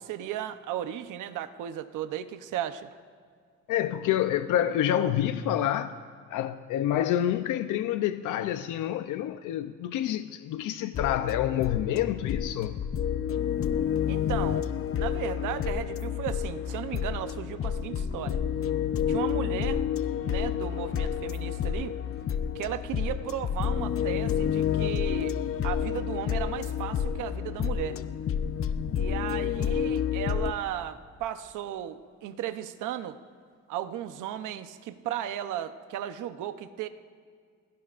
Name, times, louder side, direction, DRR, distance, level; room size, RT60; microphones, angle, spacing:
voice 1, 0.0-2.9 14.1-14.7 14.9-18.4 19.1-19.9 20.2-22.0 22.5-25.4 25.6-28.0 28.9-33.2 33.7-36.9, right 11 dB, 90° right, 0.9 m, -35 dB
voice 2, 3.7-5.9 6.3-12.7, left 11 dB, 85° left, 0.7 m, -28 dB
sound 1, 10.9-30.5, left 8 dB, 45° left, 0.8 m, -29 dB
29.5 x 17.0 x 2.5 m
cardioid pair, 90°, 30 cm